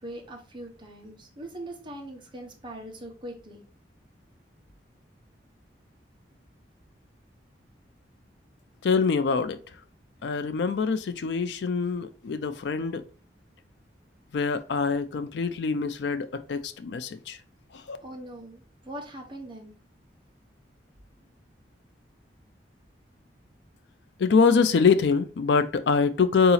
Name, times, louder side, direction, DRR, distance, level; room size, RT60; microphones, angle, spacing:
voice 1, 0.0-3.6 18.0-19.7, right 1 dB, 30° right, 1.0 m, -41 dB
voice 2, 8.8-9.6 10.2-13.0 14.3-17.4 17.7-18.0 24.2-26.5, left 5 dB, 70° left, 0.4 m, -24 dB
3.9 x 2.9 x 3.9 m
head